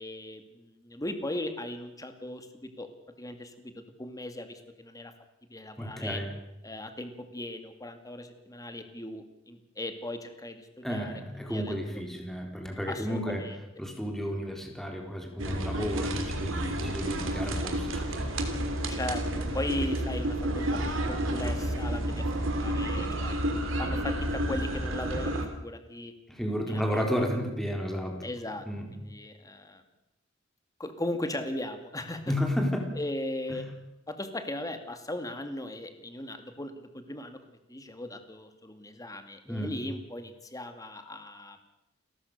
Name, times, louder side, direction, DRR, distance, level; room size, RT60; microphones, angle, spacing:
voice 1, 0.0-2.9 3.2-5.1 5.5-6.2 6.6-11.7 12.9-13.6 16.6-17.1 18.9-23.4 23.8-26.1 26.7-27.0 28.2-29.8 30.8-32.3 33.0-33.7 34.1-41.6, left 1 dB, 20° left, 7 dB, 2.3 m, -38 dB
voice 2, 5.8-6.3 10.8-13.4 13.8-18.4 26.3-28.3 28.7-28.9 32.3-33.0 33.5-33.7 39.5-39.7, equal, ahead, 2 dB, 4.0 m, -32 dB
sound 1, 15.4-25.5, right 1 dB, 75° right, 3.1 m, -30 dB
29.5 x 14.0 x 6.7 m, 0.88 s
head